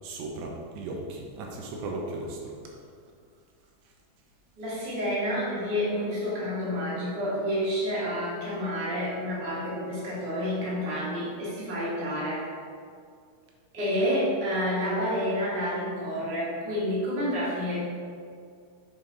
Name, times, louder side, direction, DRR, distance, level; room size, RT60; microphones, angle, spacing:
voice 1, 0.0-2.5, right 2 dB, 85° right, -1 dB, 3.0 m, -36 dB
voice 2, 4.6-12.4 13.7-17.8, equal, 65° right, -8 dB, 1.0 m, -29 dB
7.7 x 4.8 x 4.0 m, 2.2 s
omnidirectional pair, 5.3 m